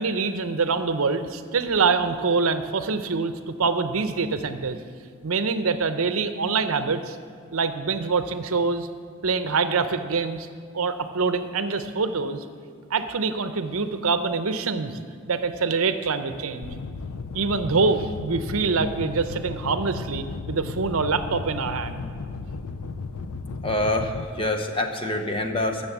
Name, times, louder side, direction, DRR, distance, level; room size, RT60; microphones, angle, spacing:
voice 1, 0.0-4.8 5.2-7.2 7.5-8.9 9.2-10.5 10.7-12.4 12.9-15.0 15.3-16.8 17.3-22.1, right 4 dB, 75° right, 10 dB, 0.7 m, -25 dB
sound 1, 16.6-24.3, left 4 dB, 85° left, 0.5 m, -35 dB
voice 2, 23.6-25.9, left 1 dB, 25° left, 5 dB, 0.9 m, -26 dB
14.5 x 6.7 x 7.2 m, 2.1 s
head